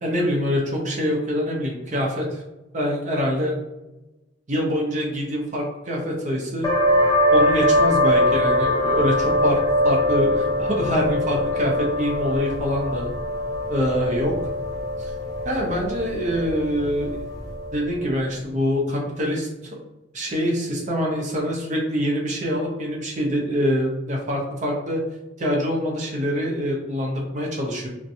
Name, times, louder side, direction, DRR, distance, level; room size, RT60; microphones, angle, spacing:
voice 1, 0.0-2.4 2.7-3.5 4.5-6.7 7.3-13.1 13.7-14.3 15.0-15.1 15.4-17.1 17.7-19.5 20.1-25.0 25.4-27.9, equal, 40° right, -1 dB, 0.6 m, -25 dB
sound 1, 6.6-17.9, left 1 dB, 20° left, 0.6 m, -22 dB
2.5 x 2.1 x 2.7 m, 1.0 s
head